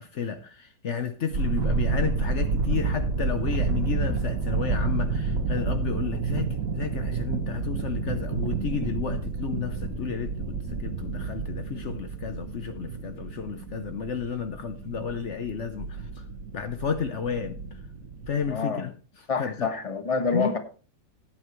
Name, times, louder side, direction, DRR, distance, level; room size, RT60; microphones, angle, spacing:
voice 1, 0.0-16.2 16.5-17.6 18.3-18.9 19.4-19.7 20.3-20.5, left 7 dB, 80° left, 0.6 m, -32 dB
sound 1, 1.3-18.5, right 4 dB, 45° right, 1.5 m, -30 dB
voice 2, 18.5-18.9 19.3-20.6, left 4 dB, 20° left, 0.9 m, -27 dB
16.0 x 9.1 x 3.1 m
omnidirectional pair, 2.4 m